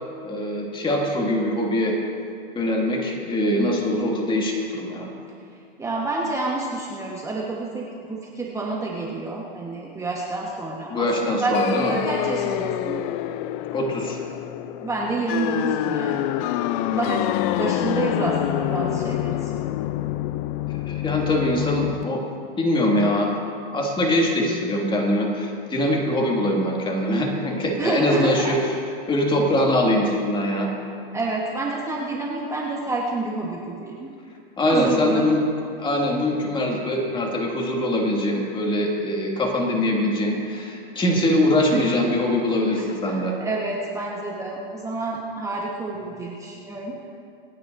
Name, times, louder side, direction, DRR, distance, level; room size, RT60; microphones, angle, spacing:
voice 1, 0.2-2.0 2.5-5.1 10.9-11.9 13.7-14.2 20.9-22.2 22.6-23.3 23.7-28.6 29.1-30.7 34.6-35.4 35.8-43.4, left 1 dB, 15° left, 0 dB, 2.0 m, -22 dB
voice 2, 5.8-13.0 14.8-16.2 16.8-19.6 27.8-28.6 31.1-34.1 34.6-35.3 41.7-42.0 43.1-47.1, right 3 dB, 10° right, -3 dB, 1.2 m, -29 dB
sound 1, 11.5-22.0, left 13 dB, 40° left, 0.4 m, -26 dB
27.0 x 9.5 x 2.6 m, 2.5 s
hypercardioid pair, 120°, 29 cm